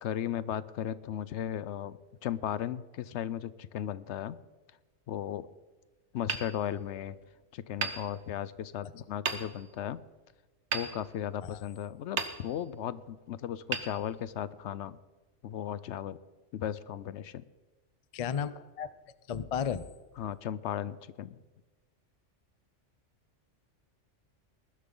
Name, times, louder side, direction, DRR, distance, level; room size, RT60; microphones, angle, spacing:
voice 1, 0.0-4.4 5.1-5.5 6.1-7.2 7.5-10.0 10.7-15.0 15.4-16.2 16.5-17.4 20.2-21.4, left 10 dB, 75° left, 17 dB, 0.9 m, -36 dB
Hammer, 6.2-7.3 7.8-8.7 9.2-9.9 10.7-11.7 12.1-12.9 13.7-14.6, right 5 dB, 65° right, 1.4 m, -37 dB
voice 2, 18.1-18.9 19.3-19.9, left 7 dB, 45° left, 15 dB, 0.5 m, -33 dB
20.0 x 12.0 x 3.9 m, 1.3 s
omnidirectional pair, 1.2 m